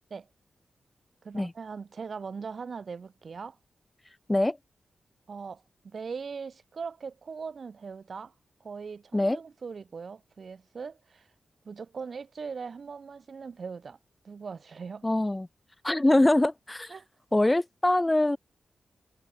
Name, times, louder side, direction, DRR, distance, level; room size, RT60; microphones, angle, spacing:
voice 1, 1.2-3.6 5.3-8.3 8.6-11.3 11.7-14.0 14.2-15.0 16.9-17.1, right 5 dB, 55° right, 5.3 m, -40 dB
voice 2, 15.0-15.5 15.8-16.9 17.3-18.4, left 1 dB, 15° left, 2.2 m, -23 dB
wide cardioid pair, 120°, 0 cm